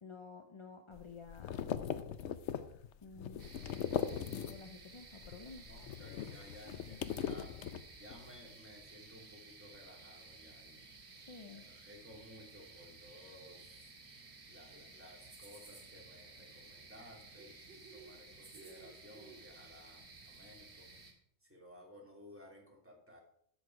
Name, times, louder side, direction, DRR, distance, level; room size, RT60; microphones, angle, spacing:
voice 1, 0.0-1.6 3.0-3.4 4.3-5.7 6.6-7.0 11.1-11.6, left 4 dB, 35° left, 5 dB, 0.5 m, -52 dB
sound 1, 0.9-4.8 5.1-8.3, left 9 dB, 65° left, 0.9 m, -40 dB
sound 2, 3.4-21.1, right 3 dB, 55° right, 2.0 m, -55 dB
voice 2, 5.6-7.7 7.9-10.9 11.5-13.9 14.5-17.6 17.9-20.9 21.4-23.2, left 1 dB, 10° right, -2 dB, 2.7 m, -57 dB
13.0 x 6.3 x 4.7 m, 0.68 s
omnidirectional pair, 1.4 m